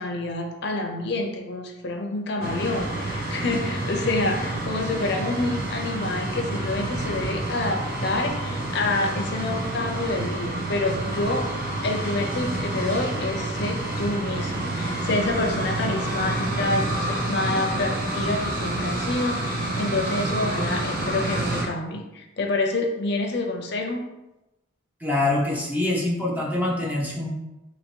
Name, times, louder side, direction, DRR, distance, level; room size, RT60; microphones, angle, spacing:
voice 1, 0.0-11.5 11.8-24.1, left 2 dB, 55° left, 3 dB, 0.6 m, -28 dB
sound 1, 2.4-21.7, right 1 dB, 45° right, 0.7 m, -28 dB
voice 2, 25.0-27.3, left 2 dB, 10° right, -4 dB, 0.6 m, -24 dB
2.9 x 2.8 x 4.3 m, 0.98 s
head